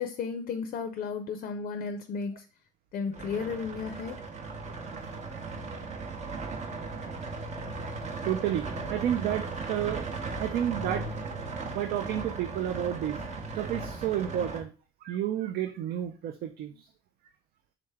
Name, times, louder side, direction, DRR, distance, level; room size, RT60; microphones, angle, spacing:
voice 1, 0.0-2.5 2.9-4.2, left 5 dB, 50° left, 7 dB, 0.4 m, -34 dB
sound 1, 3.1-14.6, right 3 dB, 45° right, 0.8 m, -37 dB
voice 2, 4.7-5.4 5.9-6.0 7.7-13.2 13.5-14.7 15.0-16.9, right 11 dB, 65° right, 6 dB, 0.4 m, -32 dB
3.8 x 3.2 x 3.4 m, 0.36 s
cardioid pair, 110°, 17 cm